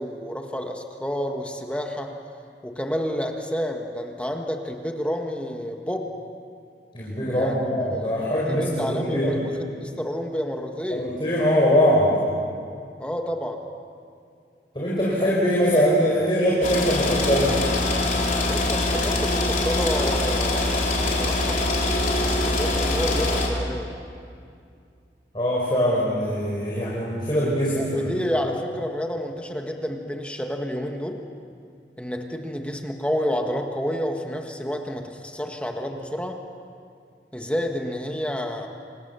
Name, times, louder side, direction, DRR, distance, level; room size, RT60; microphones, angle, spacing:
voice 1, 0.0-2.1 2.6-6.1 7.3-11.1 13.0-13.6 18.5-23.9 27.7-31.2 32.0-36.4 37.3-38.7, equal, 5° left, 3 dB, 1.6 m, -30 dB
voice 2, 6.9-9.3 10.9-12.1 14.7-17.6 25.3-28.0, equal, 30° left, -6 dB, 4.9 m, -22 dB
sound 1, 16.6-23.5, left 2 dB, 45° left, 4.1 m, -23 dB
28.0 x 27.0 x 7.0 m, 2.4 s
head